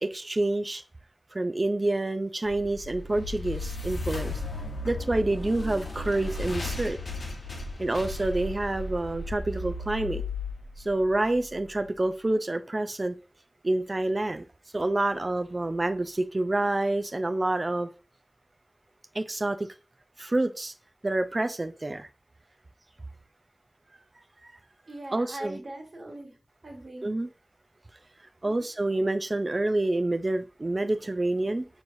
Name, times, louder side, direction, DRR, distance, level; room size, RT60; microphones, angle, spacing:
voice 1, 0.0-0.8 1.3-4.3 4.8-7.0 7.8-10.2 10.8-13.2 13.6-14.4 14.7-17.9 19.1-19.7 20.2-20.7 21.0-22.1 24.4-24.5 25.1-25.6 27.0-27.3 28.4-31.7, right 2 dB, 40° right, 0.4 m, -28 dB
sound 1, 2.5-11.6, left 2 dB, 90° left, 0.9 m, -35 dB
voice 2, 24.9-26.4 26.6-27.1 28.4-28.7, right 1 dB, 65° right, 1.6 m, -41 dB
6.4 x 3.1 x 2.6 m
wide cardioid pair, 70°, 0 cm